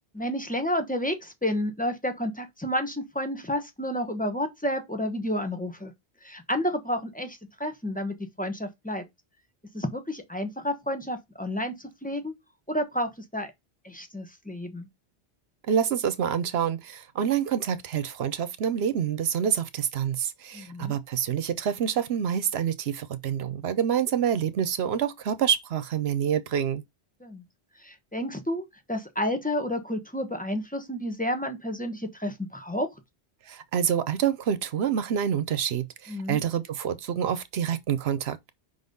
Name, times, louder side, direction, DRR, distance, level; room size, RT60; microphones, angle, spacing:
voice 1, 0.1-5.9 6.2-9.0 9.7-12.3 12.7-13.5 13.8-14.9 20.5-21.0 27.2-27.4 27.8-32.9 36.1-36.4, left 1 dB, 10° left, 1.1 m, -30 dB
voice 2, 15.7-26.8 33.5-38.5, right 8 dB, 75° right, 0.9 m, -27 dB
5.2 x 4.0 x 5.3 m
omnidirectional pair, 1.1 m